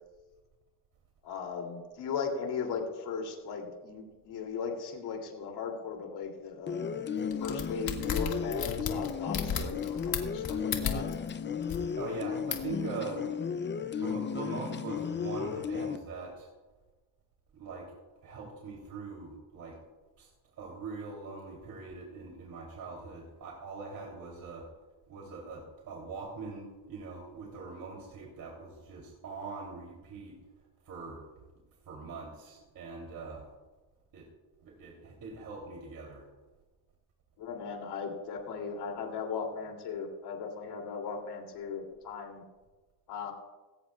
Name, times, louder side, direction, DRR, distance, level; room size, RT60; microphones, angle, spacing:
voice 1, 1.2-6.9 7.4-11.1 37.4-42.4 43.1-43.3, left 5 dB, 85° left, 2 dB, 3.1 m, -37 dB
sound 1, 6.7-16.0, left 7 dB, 30° left, 0.6 m, -34 dB
sound 2, 7.3-11.3 11.6-11.8 12.5-12.7, left 7 dB, 65° left, 2.0 m, -33 dB
voice 2, 12.0-13.2 14.0-16.5 17.5-17.9 18.2-19.8 20.2-20.3 20.6-24.6 25.1-30.4 30.8-31.2 31.8-33.5 34.1-34.3 34.6-36.3, right 4 dB, 60° right, -2 dB, 3.3 m, -42 dB
20.0 x 17.5 x 2.4 m, 1.2 s
cardioid pair, 140°, 39 cm